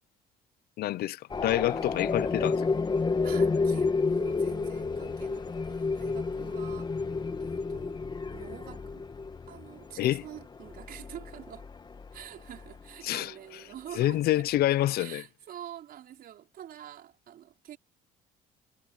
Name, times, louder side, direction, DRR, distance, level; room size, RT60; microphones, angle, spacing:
voice 1, 0.8-2.6 10.0-10.2 13.0-13.3 14.0-15.2, left 14 dB, 65° left, 0.6 m, -27 dB
sound 1, 1.3-12.9, left 4 dB, 25° left, 1.7 m, -31 dB
voice 2, 3.2-6.9 7.4-8.0 8.3-9.1 9.5-11.7 12.1-14.5 15.0-17.8, right 11 dB, 60° right, 4.9 m, -46 dB
cardioid pair, 110°, 17 cm